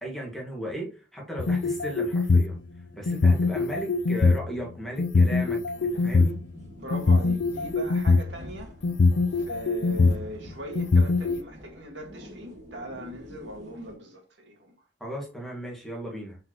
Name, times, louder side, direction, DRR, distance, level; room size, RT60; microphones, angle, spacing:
voice 1, 0.0-2.6 2.9-6.4 15.0-16.4, equal, ahead, 2.0 m, -36 dB
sound 1, 1.4-2.5 3.1-4.4 5.0-6.3 6.9-8.3 8.8-10.2 10.7-11.4, left 3 dB, 85° left, 0.5 m, -21 dB
sound 2, 5.7-14.0, left 1 dB, 40° right, 1.6 m, -46 dB
voice 2, 6.8-8.7 9.3-14.8, equal, 85° right, 1.9 m, -40 dB
7.5 x 4.5 x 3.0 m
head